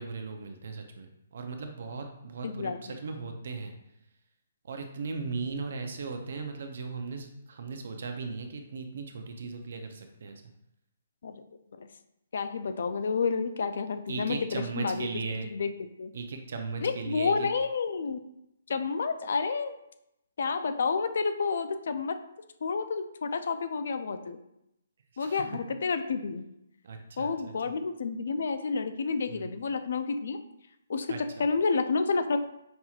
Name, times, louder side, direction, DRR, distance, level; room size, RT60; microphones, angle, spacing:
voice 1, 0.0-3.7 4.6-10.4 14.1-15.5 16.1-17.5 25.1-25.5 26.8-27.3 29.3-29.6 31.1-31.4, right 4 dB, 60° right, 5 dB, 0.6 m, -37 dB
voice 2, 2.4-3.0 11.2-11.3 11.8-11.9 12.3-15.1 15.4-15.7 16.0-16.1 16.8-18.2 18.7-19.8 20.4-22.2 22.6-24.4 25.2-26.4 27.2-30.4 30.9-32.4, left 4 dB, 60° left, 10 dB, 0.4 m, -30 dB
5.4 x 2.9 x 2.4 m, 0.81 s
hypercardioid pair, 170°, 0 cm